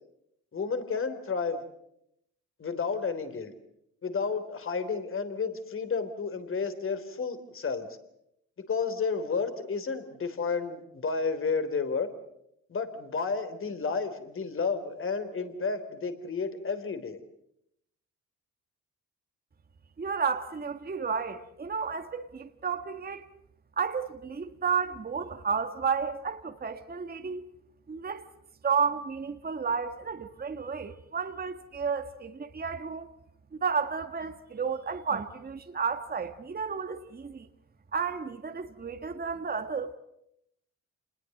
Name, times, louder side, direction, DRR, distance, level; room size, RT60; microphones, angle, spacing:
voice 1, 0.5-1.6 2.6-3.5 4.0-7.9 8.7-12.1 12.7-17.2, left 5 dB, 45° left, 3.6 m, -31 dB
voice 2, 20.0-23.3 23.8-27.5 27.9-28.3 28.6-33.1 33.5-37.5 37.9-39.9, right 6 dB, 30° right, 1.7 m, -32 dB
27.5 x 20.5 x 7.8 m
cardioid pair, 90°, 30 cm